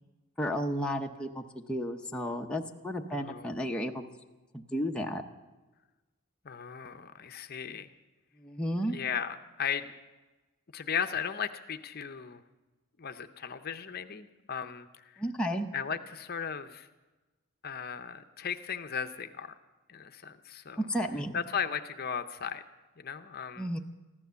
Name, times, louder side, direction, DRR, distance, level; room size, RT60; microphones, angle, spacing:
voice 1, 0.4-4.0 4.5-5.2 8.4-8.9 15.2-15.7 20.9-21.4 23.6-23.8, equal, 5° left, 1 dB, 0.7 m, -33 dB
voice 2, 3.1-3.5 6.4-7.9 8.9-9.9 10.7-12.4 13.0-14.9 15.1-15.2 15.7-16.9 17.6-19.5 19.9-20.8 21.3-22.6 23.0-23.8, left 7 dB, 45° left, 8 dB, 0.6 m, -36 dB
15.0 x 12.0 x 6.9 m, 1.2 s
head